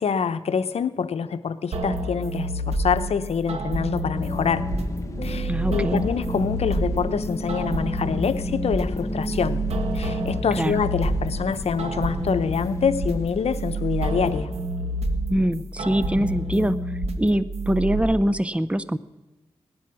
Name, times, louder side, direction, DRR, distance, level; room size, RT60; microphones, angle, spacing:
voice 1, 0.0-4.7 5.2-9.6 9.9-14.5, left 6 dB, 80° left, 12 dB, 0.7 m, -26 dB
sound 1, 1.7-18.0, right 1 dB, 80° right, 1.3 m, -29 dB
sound 2, 4.1-14.5, left 1 dB, 30° left, 1.2 m, -33 dB
voice 2, 5.5-6.0 10.6-10.7 15.3-16.8 17.2-19.0, equal, 10° right, 14 dB, 0.6 m, -23 dB
18.5 x 10.5 x 6.3 m, 1.1 s
cardioid pair, 70°, 10 cm